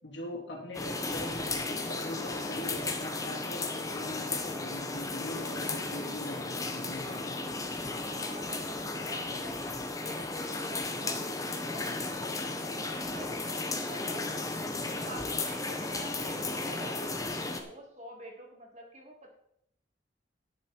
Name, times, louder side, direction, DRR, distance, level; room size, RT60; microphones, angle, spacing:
voice 1, 0.0-7.4, left 1 dB, 80° left, -1 dB, 3.3 m, -41 dB
sound 1, 0.7-17.6, left 3 dB, 20° left, 1.1 m, -35 dB
voice 2, 8.0-12.4 12.9-19.3, right 1 dB, 40° right, 0 dB, 3.0 m, -47 dB
11.0 x 9.9 x 4.7 m, 0.73 s
head